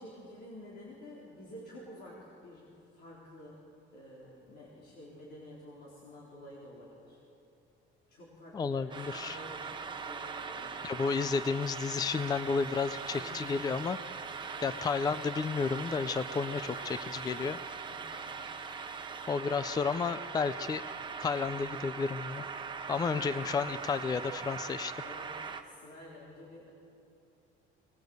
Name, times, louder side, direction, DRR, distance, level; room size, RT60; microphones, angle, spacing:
voice 1, 0.0-3.6 3.9-7.2 8.1-10.9 13.2-13.6 14.5-14.8 17.9-18.4 25.0-26.7, left 1 dB, 50° left, -5 dB, 4.2 m, -50 dB
voice 2, 8.5-9.4 10.8-14.0 14.6-17.6 19.3-20.8 21.2-22.4 22.9-24.9, left 5 dB, 20° left, 14 dB, 0.4 m, -32 dB
sound 1, 8.9-25.6, right 5 dB, 20° right, 1.2 m, -41 dB
23.0 x 20.0 x 8.0 m, 2.6 s
cardioid pair, 160°, 21 cm